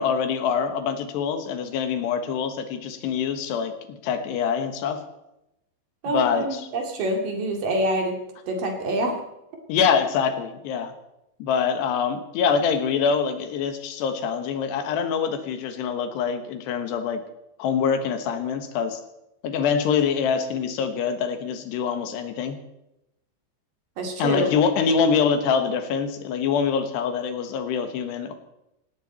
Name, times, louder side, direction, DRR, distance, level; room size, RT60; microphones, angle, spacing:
voice 1, 0.0-5.0 6.1-6.6 9.7-10.9 11.4-17.2 17.6-19.0 19.4-22.6 24.2-28.3, left 6 dB, 75° left, 8 dB, 3.4 m, -25 dB
voice 2, 6.0-8.2 8.5-9.2 24.0-24.5, right 1 dB, 55° right, 3 dB, 3.5 m, -26 dB
17.5 x 17.0 x 4.3 m, 0.88 s
omnidirectional pair, 5.1 m